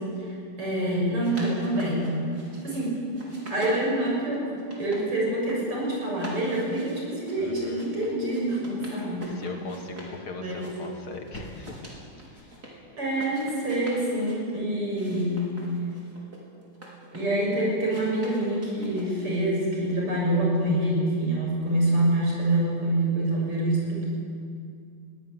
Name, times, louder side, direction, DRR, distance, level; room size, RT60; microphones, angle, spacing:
voice 1, 0.0-2.2 2.6-3.1 3.5-9.4 10.3-10.8 13.0-15.5 17.1-24.1, right 1 dB, 85° right, -3 dB, 8.0 m, -26 dB
sound 1, 1.0-2.8 3.1-5.0 5.3-5.8 6.1-10.2 10.5-12.7 13.1-14.4 14.9-17.4 17.9-19.4, right 1 dB, 35° right, 4.7 m, -44 dB
voice 2, 7.4-7.8 9.4-11.7, left 4 dB, 70° left, 3 dB, 3.1 m, -39 dB
22.0 x 17.5 x 9.6 m, 2.3 s
omnidirectional pair, 2.4 m